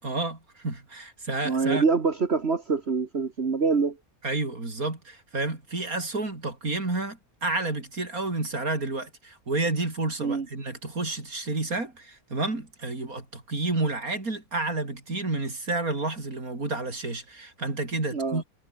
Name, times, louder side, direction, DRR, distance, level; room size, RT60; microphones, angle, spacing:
voice 1, 0.0-1.9 4.2-18.4, right 2 dB, 65° right, 5.2 m, -30 dB
voice 2, 1.4-4.0 10.2-10.4 18.1-18.4, right 4 dB, 45° right, 1.7 m, -25 dB
omnidirectional pair, 1.6 m